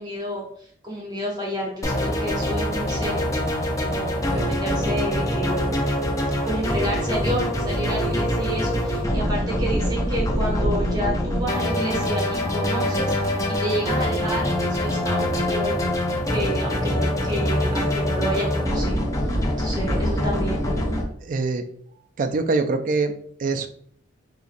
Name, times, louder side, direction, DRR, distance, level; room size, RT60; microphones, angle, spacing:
voice 1, 0.0-3.3 3.8-5.7 6.4-15.8 16.3-19.1 19.6-20.8, right 1 dB, 20° right, -2 dB, 0.7 m, -30 dB
sound 1, 1.8-21.0, left 1 dB, 15° left, 0.5 m, -24 dB
voice 2, 21.2-21.7 22.2-23.1 23.4-23.7, right 3 dB, 45° right, 7 dB, 0.3 m, -23 dB
3.9 x 2.9 x 2.5 m, 0.62 s
head